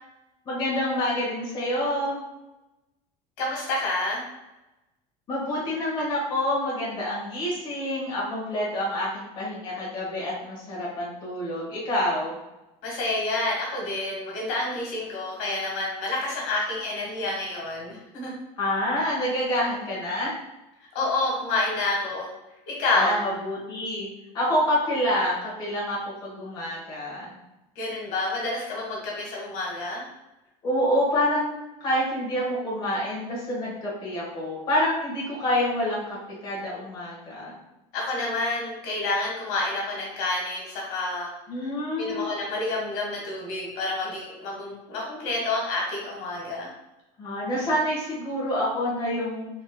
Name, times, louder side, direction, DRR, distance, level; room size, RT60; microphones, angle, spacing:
voice 1, 0.4-2.2 5.3-12.3 18.6-20.4 22.9-24.1 24.3-27.3 30.6-36.0 36.4-37.5 41.5-42.3 47.2-49.5, left 1 dB, 30° left, -6 dB, 1.1 m, -27 dB
voice 2, 3.4-4.2 12.8-18.3 20.9-22.3 22.7-23.2 27.8-30.0 37.9-41.3 42.0-46.7, left 2 dB, 70° left, -3 dB, 1.3 m, -28 dB
4.0 x 3.4 x 2.2 m, 0.98 s
cardioid pair, 165°, 16 cm